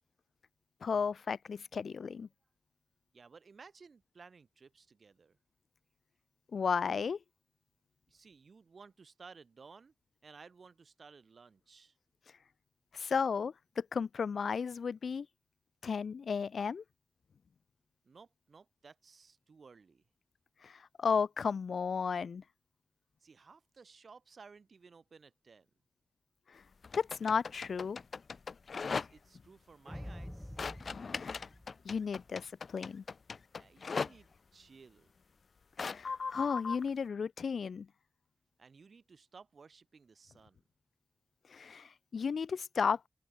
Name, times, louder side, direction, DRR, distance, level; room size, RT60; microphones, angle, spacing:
voice 1, 0.8-2.3 6.5-7.2 12.9-15.3 15.8-16.8 20.6-22.4 26.5-26.6 26.9-28.0 31.1-31.4 31.8-33.0 35.8-37.9 41.5-43.1, left 6 dB, 85° left, 1.8 m, -34 dB
voice 2, 3.1-5.4 8.1-9.9 10.2-12.0 18.0-20.0 23.2-25.7 28.8-30.6 33.5-35.1 38.6-40.6, right 5 dB, 60° right, 6.0 m, -57 dB
sound 1, 26.8-29.4 30.6-34.1 35.8-36.9, left 5 dB, 60° left, 0.4 m, -38 dB
sound 2, 29.9-32.3, left 1 dB, 5° left, 3.1 m, -47 dB
open air
wide cardioid pair, 120°, 0 cm